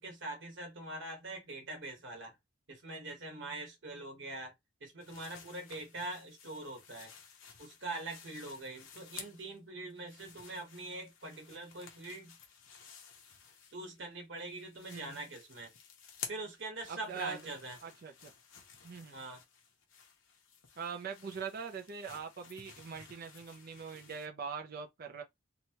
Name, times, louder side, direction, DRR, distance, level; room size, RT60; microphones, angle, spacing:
voice 1, 0.0-2.4 2.7-4.5 4.8-7.1 7.6-12.4 13.7-15.7 16.3-17.8 19.1-19.4, right 2 dB, 65° right, 1.3 m, -43 dB
sound 1, 5.0-9.6 9.9-14.1 14.4-24.3, left 7 dB, 85° left, 0.8 m, -53 dB
voice 2, 14.9-15.2 16.9-17.4 17.8-18.3 18.8-19.2 20.8-25.2, right 6 dB, 50° right, 0.5 m, -42 dB
2.9 x 2.2 x 2.9 m
head